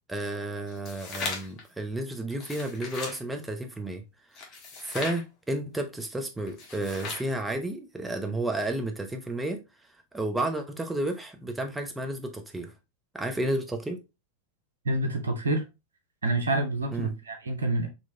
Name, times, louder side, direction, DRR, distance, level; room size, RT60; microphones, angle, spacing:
voice 1, 0.1-4.0 4.3-4.4 4.8-9.6 10.1-12.7 13.1-14.0 16.9-17.1, right 1 dB, 10° right, 0.8 m, -32 dB
sound 1, 0.7-1.6 2.3-3.2 4.4-5.2 6.5-7.3, left 4 dB, 40° left, 1.3 m, -37 dB
voice 2, 14.8-15.6 16.2-17.9, right 2 dB, 75° right, 0.9 m, -27 dB
4.3 x 3.0 x 2.7 m
figure-of-eight pair, 90°, 0 cm